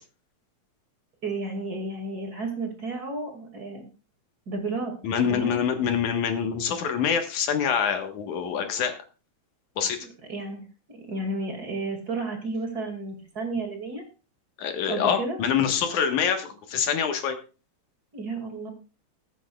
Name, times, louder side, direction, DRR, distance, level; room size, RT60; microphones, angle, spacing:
voice 1, 1.2-3.8 4.5-4.9 5.3-5.6 10.0-10.6 10.9-14.0 14.9-15.4 18.1-18.7, right 2 dB, 35° right, 3 dB, 2.6 m, -32 dB
voice 2, 5.0-8.9 9.8-10.0 14.6-17.4, left 7 dB, 85° left, 6 dB, 2.9 m, -25 dB
21.0 x 8.1 x 2.4 m, 0.33 s
omnidirectional pair, 3.3 m